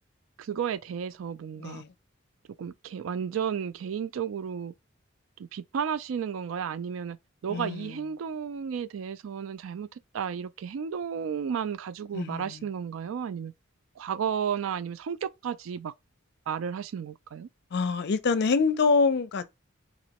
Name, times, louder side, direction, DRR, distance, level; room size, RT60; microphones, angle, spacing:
voice 1, 0.4-1.8 2.6-4.7 5.4-7.2 7.4-13.5 14.0-15.9 16.5-17.5, right 7 dB, 80° right, 0.4 m, -33 dB
voice 2, 7.5-7.9 12.1-12.6 17.7-19.4, left 4 dB, 55° left, 0.5 m, -25 dB
4.1 x 3.0 x 2.9 m
head